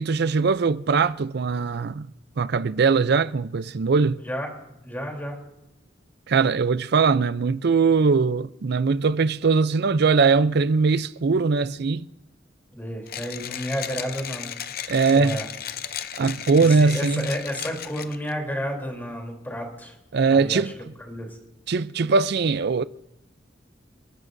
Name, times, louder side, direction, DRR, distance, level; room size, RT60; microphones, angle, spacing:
voice 1, 0.0-2.1 2.4-4.2 6.3-12.1 14.9-15.4 16.2-17.3 20.1-20.7 21.7-22.8, right 4 dB, 60° right, 0.5 m, -21 dB
voice 2, 4.8-5.4 12.7-14.5 14.9-15.5 16.6-19.9 20.3-20.7 21.0-21.4, equal, 10° left, 3.4 m, -31 dB
Mechanisms, 13.1-18.3, left 10 dB, 55° left, 0.6 m, -35 dB
30.0 x 12.0 x 2.7 m
head